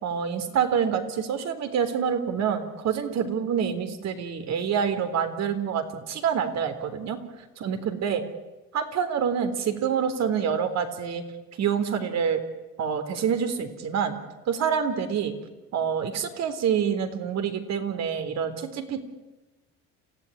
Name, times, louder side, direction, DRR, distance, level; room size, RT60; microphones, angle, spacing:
voice 1, 0.0-7.2 7.6-8.2 8.7-11.2 11.6-12.4 12.8-14.2 14.5-15.3 15.7-19.0, right 7 dB, 65° right, 8 dB, 3.8 m, -27 dB
28.5 x 16.0 x 9.9 m, 1.1 s
cardioid pair, 100°, 29 cm